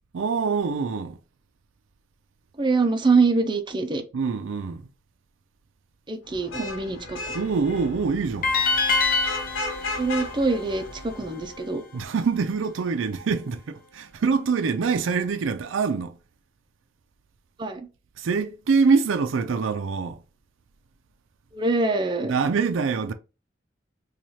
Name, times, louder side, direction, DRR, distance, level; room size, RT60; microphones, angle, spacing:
voice 1, 0.1-1.2 4.1-4.8 7.3-8.5 11.9-16.2 18.2-20.2 22.2-23.1, right 5 dB, 80° right, 0.4 m, -25 dB
voice 2, 2.6-4.0 6.1-7.3 10.0-11.8 17.6-17.9 21.5-22.5, right 3 dB, 25° right, 0.5 m, -24 dB
Vehicle horn car horn honking / Traffic noise roadway noise, 6.3-11.6, left 3 dB, 85° left, 0.8 m, -36 dB
sound 1, 8.4-11.6, left 3 dB, 45° left, 0.5 m, -26 dB
3.1 x 2.3 x 4.1 m
head